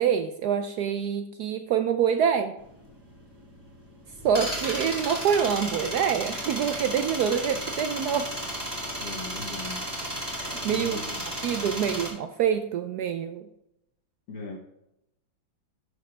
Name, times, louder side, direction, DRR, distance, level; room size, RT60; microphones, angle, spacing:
voice 1, 0.0-2.6 4.2-8.3 10.4-11.0 11.4-13.4, right 8 dB, 75° right, 8 dB, 0.9 m, -26 dB
sound 1, 2.6-12.1, equal, 10° right, 2.2 m, -34 dB
voice 2, 9.0-9.9 10.7-11.3 14.3-14.6, left 3 dB, 55° left, -1 dB, 1.3 m, -38 dB
11.5 x 6.6 x 3.3 m, 0.82 s
omnidirectional pair, 2.1 m